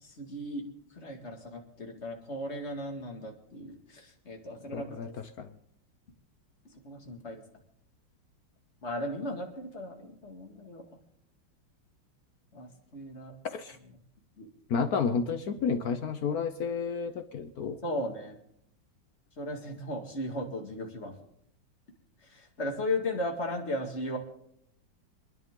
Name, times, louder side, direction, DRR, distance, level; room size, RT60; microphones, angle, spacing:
voice 1, 0.0-0.6 1.0-5.0 6.8-7.4 8.8-10.8 12.5-13.3 14.4-14.5 17.8-18.4 19.4-21.2 22.3-24.2, left 1 dB, 30° left, 2 dB, 2.3 m, -36 dB
voice 2, 4.7-5.1 5.4-5.5 13.6-13.8 14.7-17.8, left 5 dB, 55° left, 7 dB, 1.1 m, -31 dB
26.5 x 10.5 x 3.8 m, 0.71 s
omnidirectional pair, 2.3 m